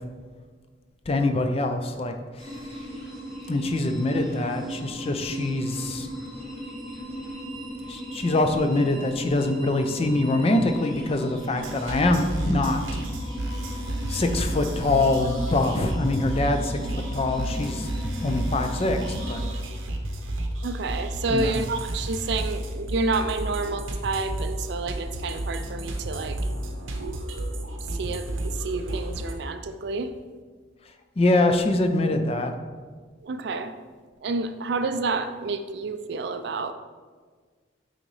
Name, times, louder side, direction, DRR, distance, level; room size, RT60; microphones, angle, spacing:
voice 1, 1.1-2.7 3.5-6.1 7.9-13.0 13.6-13.8 14.1-17.9 18.2-19.4 21.3-21.6 31.2-32.5, left 2 dB, 30° left, 6 dB, 0.4 m, -24 dB
sound 1, 2.4-19.5, equal, ahead, 1.6 m, -37 dB
sound 2, 11.6-29.3, right 1 dB, 85° right, 0.8 m, -31 dB
voice 2, 20.6-26.4 27.9-30.1 33.2-33.7 34.2-36.7, right 3 dB, 55° right, 9 dB, 0.4 m, -29 dB
8.9 x 3.9 x 3.2 m, 1.5 s
head